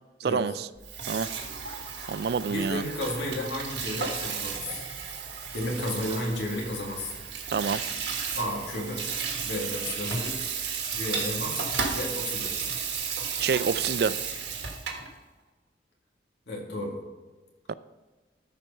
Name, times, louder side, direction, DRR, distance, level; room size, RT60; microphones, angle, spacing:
voice 1, 0.2-0.7 1.1-1.3 2.1-2.8 7.5-7.8 13.4-14.1 17.7-17.8, right 5 dB, 65° right, 16 dB, 0.3 m, -27 dB
Water tap faucet / Sink (filling or washing), 0.8-15.1, right 6 dB, 85° right, 1.5 m, -33 dB
voice 2, 2.5-4.8 5.5-7.2 8.4-9.1 9.4-10.4 10.9-12.5 16.5-17.0, left 1 dB, 80° left, -2 dB, 2.2 m, -33 dB
13.5 x 4.7 x 5.5 m, 1.2 s
head